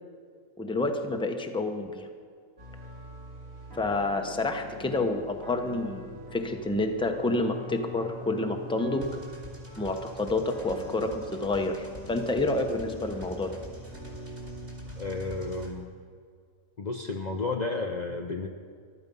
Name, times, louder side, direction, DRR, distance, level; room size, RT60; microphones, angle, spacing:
voice 1, 0.6-2.1 3.8-9.2 9.8-13.6, left 2 dB, 5° left, 5 dB, 0.8 m, -29 dB
sound 1, 2.6-15.5, equal, 75° right, 2.8 m, -44 dB
sound 2, 9.0-15.7, equal, 45° right, 2.6 m, -48 dB
voice 2, 15.0-15.9 16.8-18.5, left 3 dB, 40° left, 3 dB, 0.7 m, -32 dB
14.0 x 12.5 x 5.4 m, 2.1 s
omnidirectional pair, 1.4 m